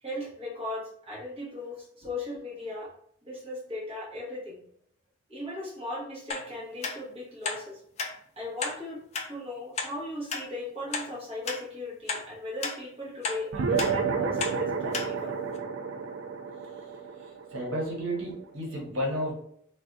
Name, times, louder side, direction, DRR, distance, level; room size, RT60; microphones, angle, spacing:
voice 1, 0.0-2.9 3.3-4.6 5.3-7.8 8.4-15.4, left 2 dB, 30° right, -6 dB, 1.0 m, -37 dB
sound 1, 6.3-6.5 6.8-7.0 7.4-7.6 8.0-8.1 8.6-8.8 9.1-9.3 9.8-9.9 10.3-10.4 10.9-11.1 11.5-11.6 12.1-12.2 12.6-12.8 13.2-13.4 13.8-13.9 14.4-14.6 14.9-15.1 15.6-15.7, left 4 dB, 35° left, 0.3 m, -32 dB
sound 2, 13.5-18.3, right 5 dB, 60° right, 0.3 m, -31 dB
voice 2, 17.2-19.3, equal, 80° right, -2 dB, 1.0 m, -32 dB
3.4 x 2.3 x 2.5 m, 0.67 s
head